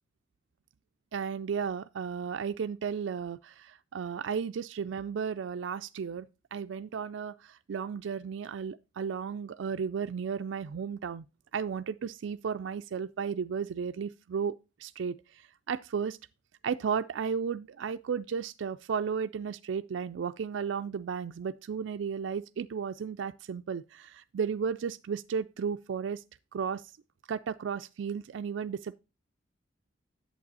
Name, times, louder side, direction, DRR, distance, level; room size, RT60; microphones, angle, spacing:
voice 1, 1.1-11.2 11.5-14.5 14.8-16.2 16.6-26.2 26.5-26.8 27.3-28.9, right 6 dB, 85° right, 0.4 m, -34 dB
8.6 x 7.2 x 4.0 m
head